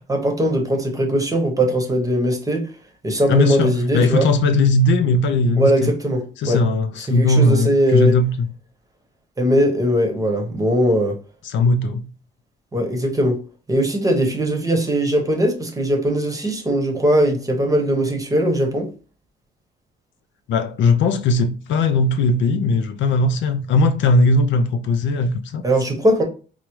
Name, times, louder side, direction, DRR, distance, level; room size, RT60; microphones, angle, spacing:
voice 1, 0.1-2.7 3.0-4.3 5.6-6.6 7.1-8.2 9.4-11.2 12.7-13.4 13.7-18.9 25.6-26.2, equal, 15° right, 0.9 m, -20 dB
voice 2, 3.3-5.9 6.4-8.5 11.4-12.0 20.5-25.6, left 2 dB, 70° left, 0.5 m, -18 dB
4.7 x 2.0 x 3.0 m
cardioid pair, 90°, 20 cm